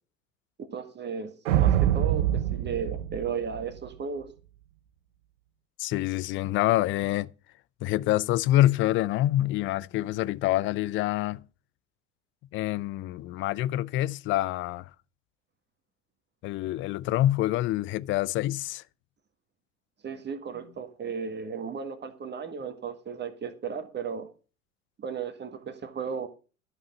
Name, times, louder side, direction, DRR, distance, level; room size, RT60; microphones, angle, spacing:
voice 1, 0.6-4.3 20.0-24.3 25.0-26.3, right 6 dB, 25° right, 1.7 m, -35 dB
sound 1, 1.5-3.9, right 11 dB, 60° right, 0.9 m, -25 dB
voice 2, 5.8-7.3 7.8-11.4 12.5-14.9 16.4-18.8, left 15 dB, 30° left, 0.5 m, -26 dB
13.0 x 7.3 x 5.3 m
figure-of-eight pair, 80°, 41 cm